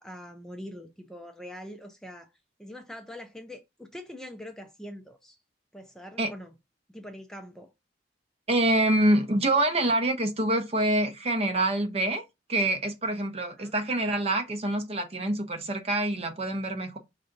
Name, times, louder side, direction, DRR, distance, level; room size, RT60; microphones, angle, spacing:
voice 1, 0.0-2.3 2.6-5.4 5.7-6.5 6.9-7.7 13.6-13.7, left 1 dB, 5° left, 0.4 m, -43 dB
voice 2, 8.5-12.2 12.5-17.0, right 1 dB, 35° right, 0.7 m, -26 dB
5.4 x 2.6 x 3.8 m
head